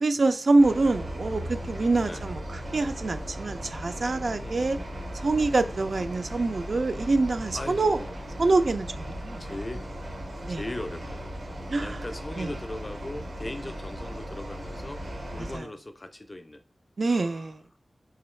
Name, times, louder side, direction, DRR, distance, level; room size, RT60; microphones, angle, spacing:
voice 1, 0.0-4.8 5.2-8.0 8.4-9.4 10.4-10.6 11.7-12.0 12.4-12.5 15.4-15.7 17.0-17.6, right 3 dB, 65° right, 0.4 m, -25 dB
sound 1, 0.6-15.6, equal, 80° right, 1.1 m, -37 dB
voice 2, 4.4-4.9 7.5-8.3 9.4-9.8 10.5-11.3 11.8-15.0 15.3-16.6 17.1-17.5, left 1 dB, 30° left, 0.4 m, -39 dB
3.7 x 3.0 x 3.1 m
wide cardioid pair, 90°, 0 cm